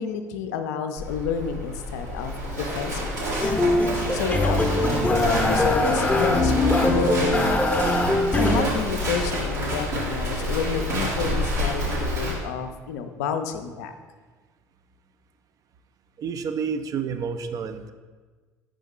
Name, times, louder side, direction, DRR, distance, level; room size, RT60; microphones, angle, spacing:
voice 1, 0.0-3.5 4.1-7.8 8.1-13.9, left 6 dB, 70° left, 8 dB, 0.4 m, -30 dB
Livestock farm animals working animals, 1.0-12.3, equal, 80° right, 1.6 m, -28 dB
sound 1, 3.4-8.6, left 2 dB, 15° left, 0.6 m, -22 dB
voice 2, 16.2-17.9, right 6 dB, 40° right, 10 dB, 0.4 m, -29 dB
5.3 x 5.0 x 3.6 m, 1.4 s
figure-of-eight pair, 60°, 9 cm